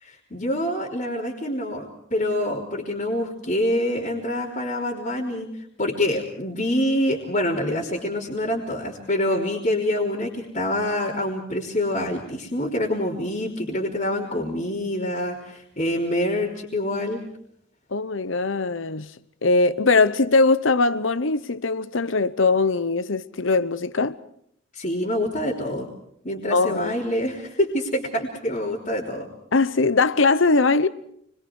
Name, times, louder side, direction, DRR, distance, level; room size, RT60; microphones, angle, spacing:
voice 1, 0.0-5.5 5.8-17.2 24.7-25.9 26.2-29.3, left 1 dB, 40° left, 3.6 m, -26 dB
voice 2, 17.9-19.1 19.4-24.2 26.5-26.9 29.5-30.9, left 3 dB, 65° left, 0.9 m, -21 dB
30.0 x 23.0 x 4.8 m
head